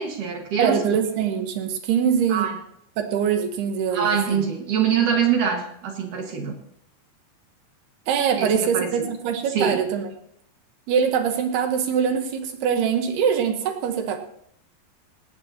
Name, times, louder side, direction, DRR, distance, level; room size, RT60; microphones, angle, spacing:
voice 1, 0.0-0.8 2.3-2.6 3.9-6.6 8.4-9.1 9.5-9.8, right 7 dB, 55° right, 2 dB, 2.8 m, -24 dB
voice 2, 0.6-2.5 3.0-4.4 8.1-10.1 10.9-14.2, right 7 dB, 75° right, 6 dB, 3.0 m, -23 dB
17.5 x 17.5 x 2.9 m, 0.70 s
omnidirectional pair, 5.0 m